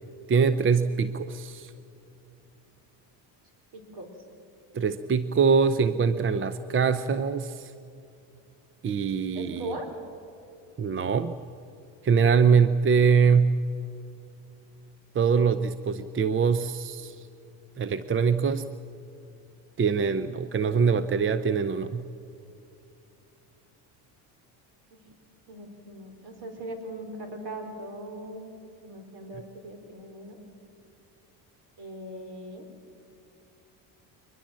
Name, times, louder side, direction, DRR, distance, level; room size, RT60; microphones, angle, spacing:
voice 1, 0.3-1.7 4.7-7.7 8.8-9.8 10.8-11.3 12.0-13.6 15.1-17.2 17.8-18.7 19.8-22.0, right 6 dB, 25° right, 13 dB, 0.7 m, -23 dB
voice 2, 3.7-4.1 9.3-9.9 24.9-25.0 25.5-28.4 28.8-30.4 31.8-32.7, right 1 dB, 55° right, 6 dB, 4.4 m, -39 dB
23.0 x 20.5 x 7.6 m, 2.7 s
supercardioid pair, 90°, 47 cm